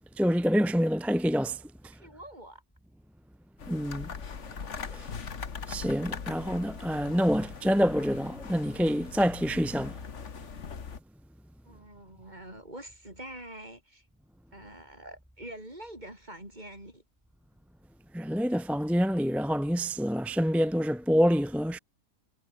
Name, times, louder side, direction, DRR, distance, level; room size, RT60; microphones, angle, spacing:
voice 1, 0.2-1.6 3.7-4.1 4.9-5.1 5.7-10.0 18.1-21.8, equal, ahead, 0.5 m, -27 dB
voice 2, 1.9-2.6 11.6-14.1 14.5-17.0, right 1 dB, 30° right, 8.1 m, -45 dB
sound 1, 3.6-11.0, left 6 dB, 55° left, 1.9 m, -41 dB
omnidirectional pair, 1.5 m